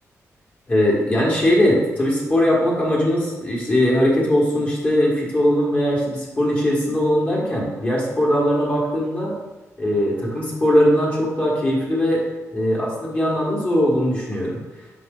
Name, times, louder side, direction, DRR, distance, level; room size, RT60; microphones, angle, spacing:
voice 1, 0.7-9.3 9.8-12.2 12.5-14.6, equal, 25° left, -4 dB, 1.6 m, -20 dB
6.2 x 4.7 x 3.8 m, 1.2 s
wide cardioid pair, 150°, 6 cm